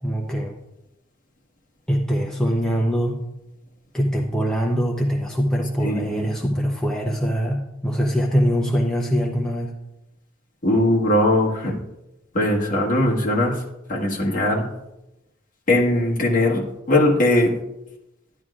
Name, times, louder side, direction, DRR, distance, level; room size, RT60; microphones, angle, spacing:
voice 1, 0.0-0.6 1.9-3.2 3.9-9.7, equal, 5° left, -2 dB, 0.6 m, -23 dB
voice 2, 5.8-6.3 10.6-11.7 12.3-13.6 13.9-14.7 15.7-17.5, left 1 dB, 40° left, -2 dB, 1.5 m, -20 dB
11.0 x 10.5 x 2.4 m, 0.94 s
head